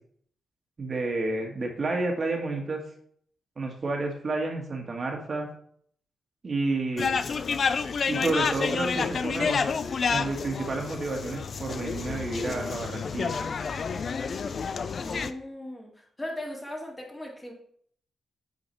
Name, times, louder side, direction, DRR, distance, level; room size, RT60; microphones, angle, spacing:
voice 1, 0.8-2.8 3.6-5.5 6.4-7.2 8.1-9.6 10.1-13.3, right 2 dB, 45° right, 1 dB, 1.6 m, -30 dB
sound 1, 7.0-15.3, left 5 dB, 55° left, 0.5 m, -29 dB
voice 2, 14.6-17.5, left 1 dB, 20° left, -1 dB, 2.3 m, -39 dB
8.3 x 4.2 x 4.4 m, 0.63 s
cardioid pair, 60°, 0 cm